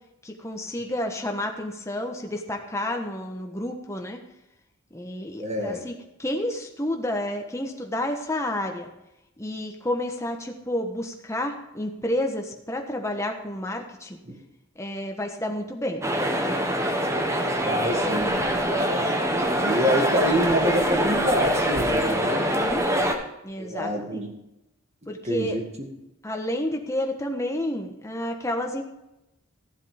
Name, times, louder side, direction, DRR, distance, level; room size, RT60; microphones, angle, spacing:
voice 1, 0.2-4.2 4.9-5.9 6.2-8.9 9.4-14.2 14.8-16.0 22.2-22.9 23.2-24.2 25.1-25.6 26.2-28.8, left 1 dB, 15° left, 3 dB, 1.2 m, -30 dB
voice 2, 5.4-5.8 14.3-14.4 17.6-18.3 18.6-22.5 23.6-24.4 25.2-25.6, equal, 30° right, 3 dB, 1.9 m, -27 dB
sound 1, 16.0-23.2, equal, 15° right, 1.0 m, -24 dB
14.5 x 7.5 x 5.1 m, 0.90 s
head